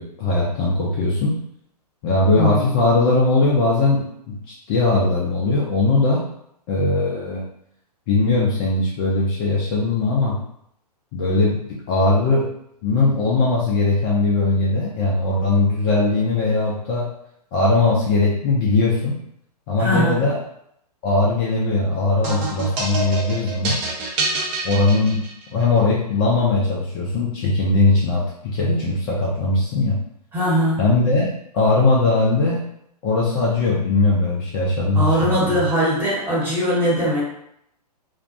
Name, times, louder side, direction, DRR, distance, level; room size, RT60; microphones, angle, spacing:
voice 1, 0.0-1.4 2.0-4.3 4.7-6.2 6.7-7.4 8.1-10.4 11.1-12.5 12.8-17.1 17.5-19.2 19.7-20.4 21.0-23.8 24.6-25.2 25.5-30.0 30.8-31.3 31.5-32.6 33.0-35.6, left 2 dB, 35° left, -5 dB, 0.5 m, -19 dB
voice 2, 2.4-2.7 19.8-20.2 30.3-30.8 34.9-37.2, equal, 10° right, -8 dB, 1.0 m, -20 dB
sound 1, 22.2-25.6, right 2 dB, 30° right, 0.6 m, -27 dB
2.5 x 2.1 x 2.5 m, 0.73 s
figure-of-eight pair, 115°, 21 cm